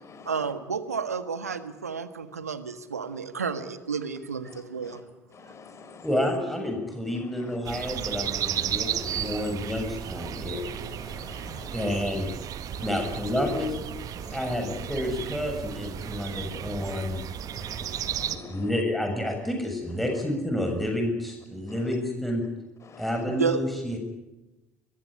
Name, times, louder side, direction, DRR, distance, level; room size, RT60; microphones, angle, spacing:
voice 1, 0.2-5.0 23.3-23.6, right 5 dB, 85° right, 12 dB, 1.6 m, -31 dB
voice 2, 5.3-6.1 8.8-9.5 10.9-11.8 12.7-12.8 14.2-14.4 16.3-16.4 16.8-17.0 17.5-18.6 22.9-23.1, left 5 dB, 35° left, 10 dB, 5.1 m, -48 dB
voice 3, 6.0-11.1 11.7-12.3 12.8-13.8 14.3-17.2 18.3-22.4 23.0-24.0, left 1 dB, ahead, 2 dB, 7.3 m, -29 dB
sound 1, 7.6-18.4, right 10 dB, 50° right, 1.8 m, -34 dB
23.5 x 22.5 x 9.9 m, 1.0 s
figure-of-eight pair, 60°, 8 cm